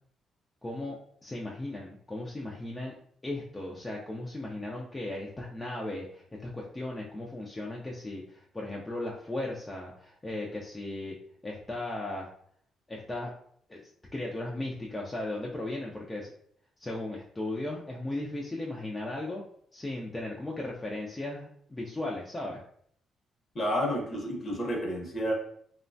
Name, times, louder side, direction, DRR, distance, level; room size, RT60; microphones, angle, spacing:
voice 1, 0.6-2.9 3.2-11.2 11.4-12.3 12.9-13.3 13.7-13.8 14.1-16.3 16.8-19.4 19.7-22.6, left 2 dB, 15° left, -3 dB, 0.4 m, -36 dB
voice 2, 23.5-25.3, equal, 40° left, 0 dB, 0.8 m, -30 dB
3.0 x 2.1 x 2.5 m, 0.64 s
cardioid pair, 90°, 0 cm